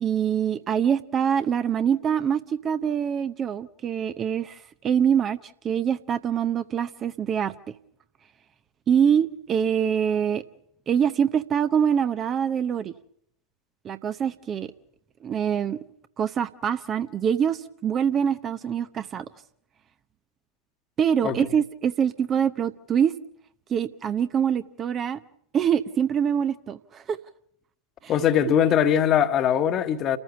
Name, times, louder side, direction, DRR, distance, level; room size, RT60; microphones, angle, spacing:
voice 1, 0.0-7.7 8.9-10.4 10.9-12.9 13.8-14.7 15.2-15.8 16.2-19.3 21.0-23.1 23.7-25.2 25.5-27.2 28.0-28.1 28.5-28.6, right 8 dB, 25° right, 0.8 m, -24 dB
voice 2, 28.1-30.2, left 9 dB, 30° left, 1.3 m, -21 dB
29.0 x 14.5 x 7.0 m
figure-of-eight pair, 90°, 0 cm